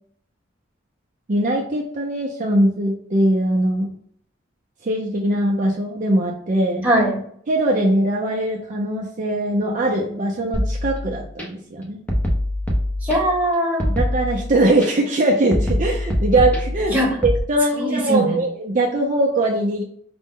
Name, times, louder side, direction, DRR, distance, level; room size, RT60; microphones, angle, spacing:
voice 1, 1.3-3.9 4.8-6.9 7.5-12.0 13.9-16.9 17.2-19.8, right 1 dB, 40° right, -1 dB, 0.5 m, -21 dB
voice 2, 6.8-7.2 13.0-13.9 16.9-17.2 17.7-18.4, right 1 dB, 10° right, -3 dB, 1.1 m, -20 dB
sound 1, 10.5-11.4 12.1-13.4 13.8-14.9 15.5-17.4, left 1 dB, 10° left, 0.6 m, -23 dB
5.1 x 2.1 x 3.6 m, 0.62 s
head